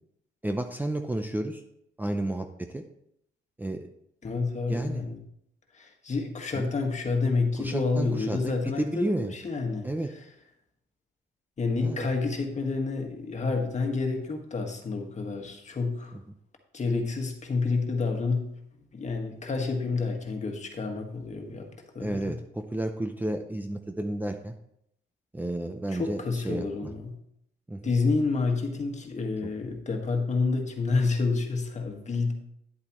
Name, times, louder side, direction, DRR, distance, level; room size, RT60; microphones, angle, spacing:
voice 1, 0.4-1.6 2.0-2.8 3.6-3.9 4.7-5.0 6.5-6.7 7.6-9.3 9.8-10.1 11.8-12.1 22.0-24.5 25.3-26.9 27.7-27.9, right 1 dB, 10° right, 5 dB, 0.6 m, -32 dB
voice 2, 4.2-5.2 5.7-10.2 11.6-16.1 16.7-18.5 18.7-21.7 21.9-22.4 25.9-27.1 27.8-32.3, left 4 dB, 35° left, 3 dB, 1.7 m, -29 dB
10.0 x 8.1 x 3.1 m, 0.76 s
cardioid pair, 90°, 20 cm